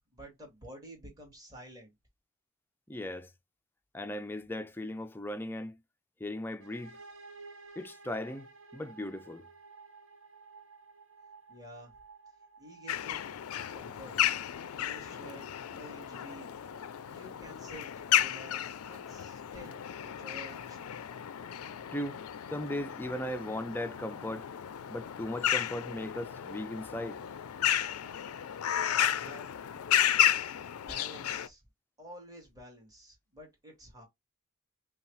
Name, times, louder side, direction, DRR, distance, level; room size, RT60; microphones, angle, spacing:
voice 1, 0.1-1.9 11.5-11.9 12.6-13.2 13.7-14.2 14.8-16.5 16.8-20.9 29.2-29.5 30.8-31.6 32.0-34.0, right 1 dB, 15° right, 2.0 m, -50 dB
voice 2, 2.9-3.3 3.9-5.8 6.2-7.0 7.8-8.5 8.7-9.4 21.9-22.2 22.5-24.5 24.9-27.2, left 1 dB, 10° left, 0.4 m, -37 dB
sound 1, 6.6-14.3, right 4 dB, 60° right, 1.1 m, -53 dB
sound 2, 12.9-31.5, left 11 dB, 75° left, 0.4 m, -33 dB
5.5 x 2.3 x 3.1 m
head